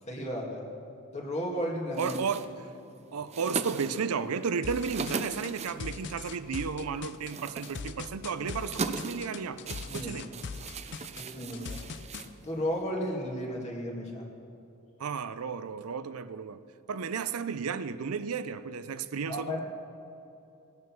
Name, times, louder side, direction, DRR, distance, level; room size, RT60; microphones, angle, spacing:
voice 1, 0.1-0.6 1.1-2.1 9.9-10.2 11.2-11.8 12.4-14.3 19.3-19.6, equal, 30° left, -1 dB, 2.1 m, -34 dB
sound 1, 1.9-12.8, right 4 dB, 30° right, 0.6 m, -40 dB
voice 2, 2.0-2.5 3.1-10.3 11.5-11.8 15.0-16.6 16.9-19.6, right 6 dB, 75° right, 12 dB, 0.5 m, -33 dB
sound 2, 4.6-12.3, left 5 dB, 55° left, 0.5 m, -40 dB
17.0 x 9.5 x 6.0 m, 2.7 s
head